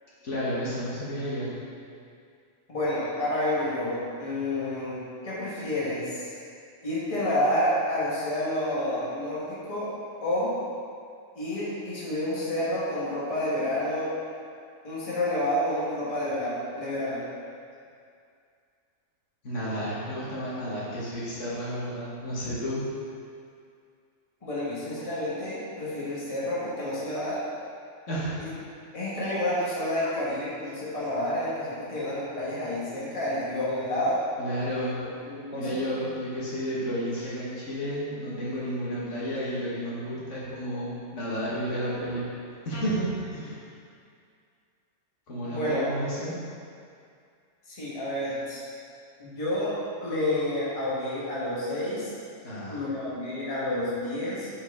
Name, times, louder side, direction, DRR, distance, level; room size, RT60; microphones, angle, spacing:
voice 1, 0.2-1.5 19.4-22.8 28.1-28.3 34.4-35.0 35.5-42.3 42.7-43.6 45.3-46.4 52.4-52.8, equal, 65° left, -8 dB, 1.6 m, -31 dB
voice 2, 2.7-6.3 6.8-9.9 10.2-10.5 11.3-14.1 14.8-17.3 24.4-27.4 28.4-28.5 28.9-34.2 35.3-35.8 45.4-45.9 47.7-48.6 49.2-52.1 52.7-54.5, left 1 dB, 25° left, -8 dB, 1.4 m, -29 dB
7.2 x 4.4 x 3.5 m, 2.3 s
omnidirectional pair, 1.4 m